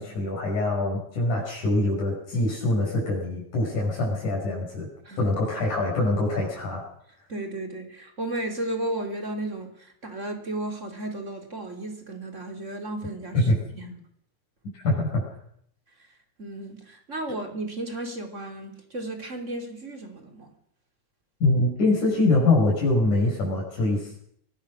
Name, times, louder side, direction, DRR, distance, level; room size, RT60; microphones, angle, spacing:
voice 1, 0.0-4.9 5.2-6.8 13.3-13.6 14.7-15.2 21.4-24.2, left 2 dB, 75° left, 7.5 m, -24 dB
voice 2, 7.3-13.5 13.7-14.0 16.4-20.5, right 1 dB, 25° right, 3.7 m, -34 dB
24.0 x 19.0 x 6.4 m
omnidirectional pair, 3.5 m